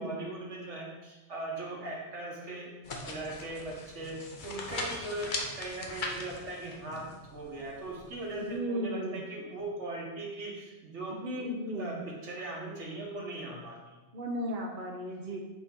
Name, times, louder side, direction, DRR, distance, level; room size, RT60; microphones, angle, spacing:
voice 1, 0.0-2.7 3.0-11.4 11.7-14.0, right 2 dB, 65° right, -2 dB, 1.7 m, -39 dB
sound 1, 2.8-8.6, left 2 dB, 45° left, 0.9 m, -40 dB
voice 2, 8.4-9.2 11.1-12.0 14.1-15.4, equal, 45° right, 0 dB, 0.9 m, -35 dB
8.3 x 4.3 x 3.8 m, 1.1 s
omnidirectional pair, 1.3 m